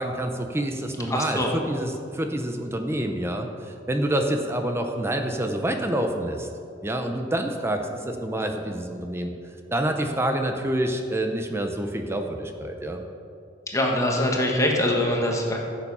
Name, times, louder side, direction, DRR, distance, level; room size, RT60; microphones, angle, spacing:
voice 1, 0.0-6.5 6.8-9.3 9.7-13.0, right 1 dB, 15° right, 5 dB, 0.7 m, -27 dB
voice 2, 1.1-1.5 13.7-15.6, left 1 dB, 15° left, -1 dB, 1.5 m, -23 dB
14.5 x 7.1 x 5.5 m, 2.5 s
head